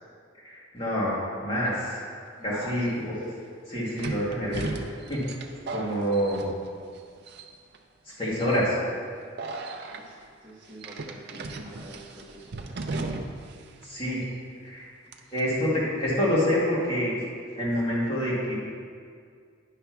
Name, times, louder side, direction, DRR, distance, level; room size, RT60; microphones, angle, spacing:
voice 1, 0.4-2.0 2.4-2.9 3.1-3.3 3.7-4.6 5.1-5.3 5.7-6.5 8.1-8.8 13.8-14.2 14.6-14.9 15.3-17.1 17.6-18.5, equal, 25° left, -7 dB, 2.0 m, -27 dB
voice 2, 2.4-3.2 9.9-13.0, equal, 10° right, -11 dB, 1.5 m, -46 dB
sound 1, 2.6-2.7 4.0-7.0 7.3-7.8 8.4-8.6 9.4-10.0 10.8-13.6 13.8-13.9 15.1-15.4, right 3 dB, 55° right, 0.5 m, -36 dB
9.9 x 3.4 x 5.9 m, 2.1 s
head